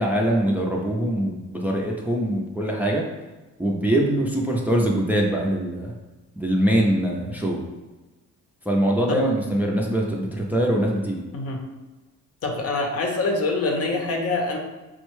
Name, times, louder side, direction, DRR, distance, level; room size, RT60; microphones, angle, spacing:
voice 1, 0.0-3.0 3.6-5.9 6.4-7.6 8.7-11.2, right 1 dB, 5° right, -2 dB, 0.5 m, -23 dB
voice 2, 12.4-14.6, left 3 dB, 50° left, 1 dB, 0.7 m, -25 dB
4.3 x 2.2 x 3.1 m, 1.2 s
cardioid pair, 90°, 30 cm